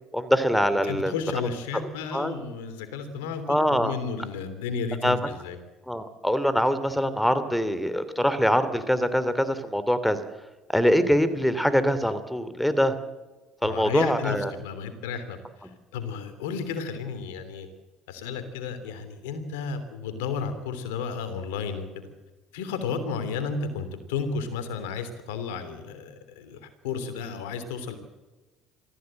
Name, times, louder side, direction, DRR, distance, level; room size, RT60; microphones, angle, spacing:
voice 1, 0.1-1.1 2.1-2.3 3.5-3.9 5.0-5.2 5.9-10.2 10.7-12.9 13.6-14.5, equal, 5° left, 13 dB, 2.7 m, -23 dB
voice 2, 0.8-5.6 13.6-15.4 15.9-17.7 18.1-22.1 22.5-28.0, left 5 dB, 85° left, 10 dB, 3.1 m, -33 dB
23.5 x 15.0 x 7.8 m, 1.2 s
hypercardioid pair, 70°, 0 cm